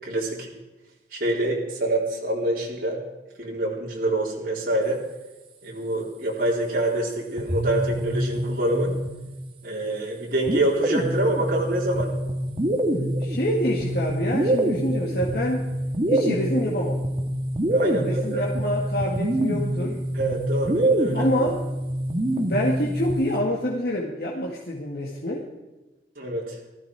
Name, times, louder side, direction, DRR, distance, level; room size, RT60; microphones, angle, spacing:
voice 1, 0.0-0.5 1.1-3.0 3.4-5.0 5.6-8.9 9.6-12.1 17.7-18.4 20.1-21.3 26.2-26.6, right 1 dB, 50° right, -3 dB, 3.9 m, -26 dB
sound 1, 7.4-9.5 10.5-23.4, right 1 dB, 30° right, 1.6 m, -26 dB
voice 2, 13.2-15.7 16.1-17.0 17.8-20.0 21.1-21.7 22.4-25.5, equal, 60° left, -3 dB, 2.1 m, -27 dB
18.5 x 14.5 x 4.8 m, 1.1 s
head